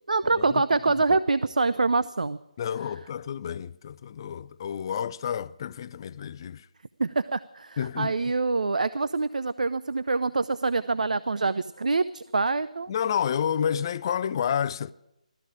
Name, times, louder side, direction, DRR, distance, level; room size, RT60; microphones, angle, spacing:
voice 1, 0.1-2.4 7.0-12.9, right 3 dB, 80° right, 0.5 m, -25 dB
voice 2, 2.6-6.7 7.8-8.1 12.9-14.9, left 8 dB, 35° left, 0.4 m, -29 dB
16.5 x 13.5 x 4.9 m
figure-of-eight pair, 150°, 4 cm